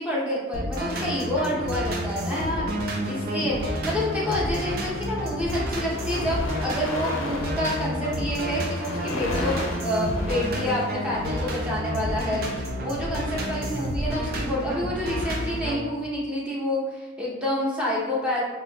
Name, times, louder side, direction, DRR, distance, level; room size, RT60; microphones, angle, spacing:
voice 1, 0.0-18.4, left 1 dB, 5° right, -6 dB, 0.7 m, -28 dB
sound 1, 0.5-15.8, equal, 50° right, 0.5 m, -30 dB
sound 2, 2.9-3.9 4.7-4.9 5.2-11.7, left 2 dB, 90° left, 0.5 m, -36 dB
4.3 x 2.7 x 2.2 m, 1.3 s
head